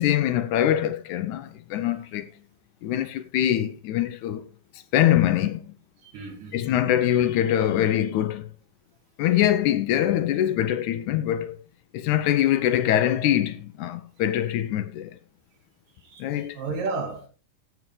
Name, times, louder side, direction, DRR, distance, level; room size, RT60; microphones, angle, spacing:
voice 1, 0.0-2.3 2.8-4.5 4.9-5.8 6.5-8.5 9.2-11.6 11.9-15.1 16.2-16.6, left 11 dB, 75° left, 2.0 m, -23 dB
voice 2, 6.0-6.7 15.9-17.3, right 4 dB, 80° right, 4.5 m, -33 dB
16.0 x 8.0 x 3.2 m
omnidirectional pair, 3.8 m